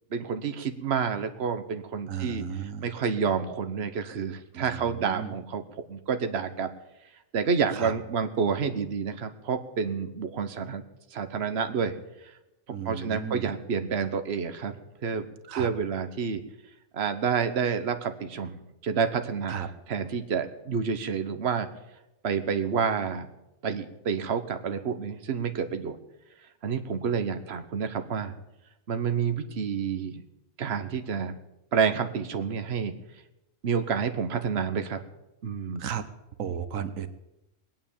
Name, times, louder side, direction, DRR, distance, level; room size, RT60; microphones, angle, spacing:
voice 1, 0.1-2.4 2.8-5.6 5.9-6.7 7.3-10.8 11.1-12.0 12.2-12.3 12.8-14.8 15.0-15.2 15.5-16.4 16.9-18.6 18.8-21.7 22.2-23.3 23.6-26.0 26.6-28.3 28.9-30.2 30.6-31.4 31.7-32.9 33.6-35.0 35.4-35.9, right 6 dB, 55° right, 8 dB, 1.3 m, -29 dB
voice 2, 2.1-2.9 4.5-5.4 7.7-7.9 12.7-13.5 15.5-15.7 19.5-19.7 35.8-36.0 36.4-37.1, right 8 dB, 90° right, 11 dB, 1.3 m, -34 dB
20.0 x 9.4 x 7.3 m, 0.94 s
omnidirectional pair, 1.3 m